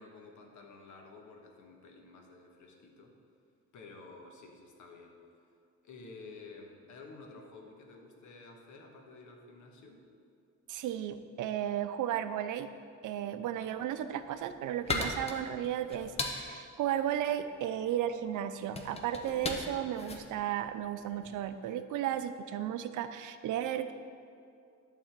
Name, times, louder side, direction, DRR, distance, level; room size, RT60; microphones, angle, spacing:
voice 1, 0.0-3.1 3.7-5.2 5.8-10.0 13.5-13.7, left 3 dB, 80° left, 2 dB, 1.4 m, -52 dB
voice 2, 10.7-12.7 13.0-23.9, right 10 dB, 90° right, 10 dB, 0.6 m, -34 dB
sound 1, 14.0-21.4, left 2 dB, 20° left, 0.7 m, -39 dB
11.5 x 4.2 x 7.4 m, 2.4 s
cardioid pair, 170°, 30 cm